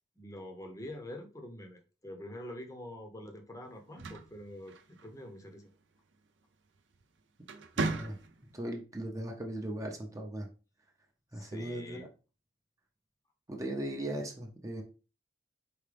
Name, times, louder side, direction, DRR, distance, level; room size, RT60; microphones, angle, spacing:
voice 1, 0.2-5.7 11.3-12.1, left 1 dB, 20° left, 4 dB, 0.8 m, -46 dB
sound 1, 3.8-5.3 6.7-7.0 7.4-8.6, right 3 dB, 75° right, 0.6 m, -37 dB
voice 2, 7.8-8.2 8.5-10.5 11.3-12.1 13.5-14.8, right 1 dB, 20° right, 1 dB, 0.6 m, -38 dB
4.8 x 2.8 x 3.3 m, 0.34 s
head